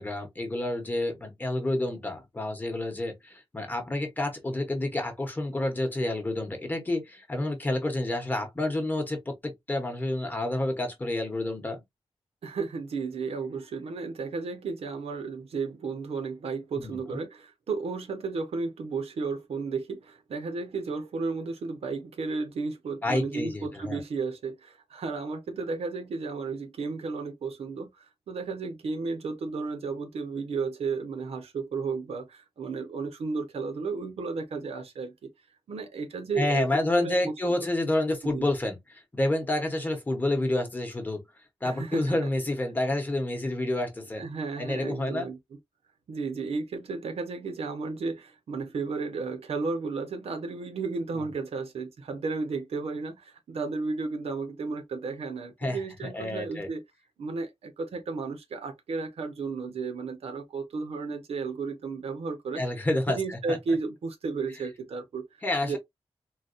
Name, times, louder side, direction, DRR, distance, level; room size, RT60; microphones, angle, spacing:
voice 1, 0.0-11.8 16.8-17.2 23.0-24.0 36.4-41.2 41.6-44.2 44.6-45.3 51.1-51.3 55.6-55.8 56.1-56.7 62.6-63.6 65.4-65.8, left 1 dB, 15° left, 0.9 m, -29 dB
voice 2, 12.4-35.3 35.7-37.6 38.3-38.5 41.6-42.2 44.1-45.4 46.1-56.8 57.2-62.6 63.1-65.3 65.6-65.8, right 4 dB, 75° right, 0.9 m, -33 dB
3.9 x 2.2 x 2.5 m
wide cardioid pair, 175°, 10 cm